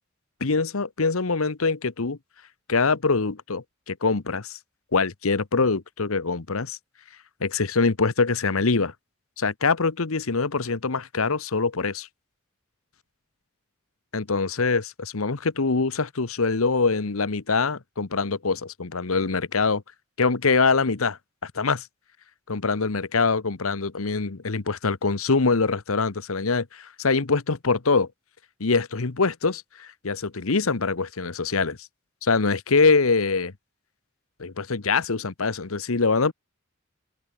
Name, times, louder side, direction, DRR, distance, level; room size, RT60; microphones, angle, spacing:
voice 1, 0.4-2.2 2.7-4.6 4.9-6.8 7.4-8.9 9.4-12.1 14.1-19.8 20.2-21.9 22.5-28.1 28.6-31.9 32.2-33.5 34.4-36.3, left 4 dB, 75° left, 1.1 m, -24 dB
open air
head